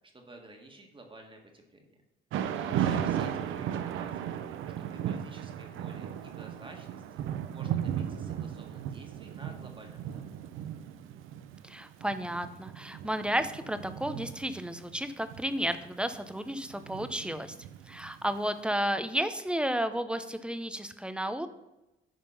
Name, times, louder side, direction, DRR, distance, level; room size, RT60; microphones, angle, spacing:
voice 1, 0.0-2.0 2.6-4.4 4.8-10.3, right 2 dB, 25° right, 2 dB, 1.6 m, -52 dB
Thunder / Rain, 2.3-18.3, right 9 dB, 85° right, 0.6 m, -36 dB
voice 2, 11.6-17.5 17.9-21.5, equal, 5° right, 10 dB, 0.6 m, -32 dB
9.8 x 3.6 x 5.6 m, 0.96 s
cardioid pair, 90°, 20 cm